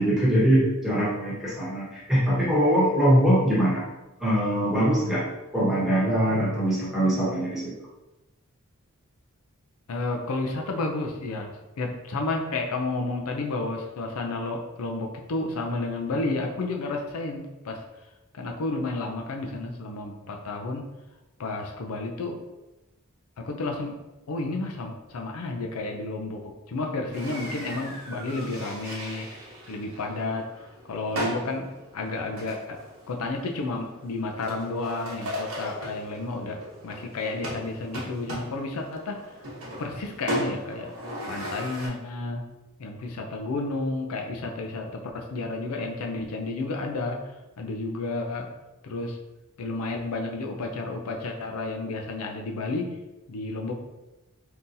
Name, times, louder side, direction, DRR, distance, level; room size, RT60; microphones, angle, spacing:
voice 1, 0.0-3.8 4.2-5.3 5.5-7.7, equal, ahead, -8 dB, 1.2 m, -22 dB
voice 2, 9.9-17.8 18.3-20.9 21.4-22.4 23.4-24.0 24.3-29.3 29.7-30.5 30.9-39.3 39.8-40.9 41.3-42.5 42.8-48.5 48.8-49.2 49.6-52.9 53.3-53.7, left 2 dB, 80° left, 2 dB, 0.5 m, -31 dB
sound 1, 27.1-41.9, right 1 dB, 70° right, 1.0 m, -37 dB
3.7 x 2.8 x 2.6 m, 1.0 s
head